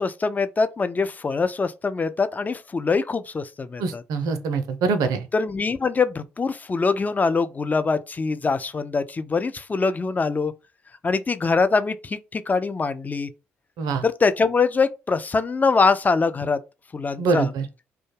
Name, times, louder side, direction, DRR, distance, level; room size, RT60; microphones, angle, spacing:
voice 1, 0.0-4.0 5.3-10.5 11.0-13.3 14.0-16.6 16.9-17.5, left 4 dB, 25° left, 0.3 m, -23 dB
voice 2, 3.8-5.3 13.8-14.0 17.2-17.6, right 4 dB, 65° right, 0.4 m, -24 dB
2.2 x 2.1 x 3.1 m
hypercardioid pair, 45°, 7 cm